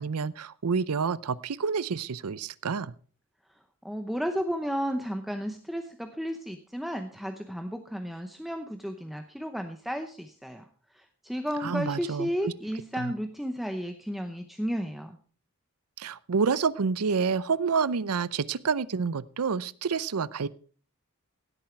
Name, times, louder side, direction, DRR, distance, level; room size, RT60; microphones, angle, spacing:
voice 1, 0.0-2.9 11.6-12.5 13.0-13.1 16.0-20.5, right 5 dB, 85° right, 20 dB, 0.6 m, -28 dB
voice 2, 3.5-15.2, equal, ahead, 6 dB, 0.8 m, -33 dB
16.5 x 8.8 x 4.5 m, 0.43 s
head